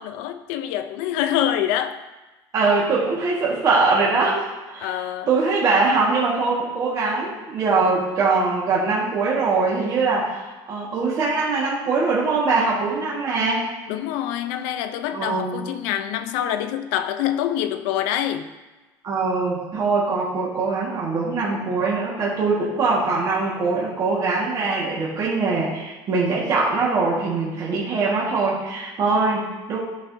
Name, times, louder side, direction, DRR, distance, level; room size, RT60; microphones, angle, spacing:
voice 1, 0.0-2.0 4.8-5.3 13.9-18.5, left 11 dB, 85° left, 9 dB, 0.6 m, -25 dB
voice 2, 2.5-4.5 4.7-13.7 15.1-15.6 19.0-29.8, right 4 dB, 35° right, -6 dB, 1.7 m, -22 dB
13.5 x 5.7 x 2.8 m, 1.2 s
cardioid pair, 160°, 10 cm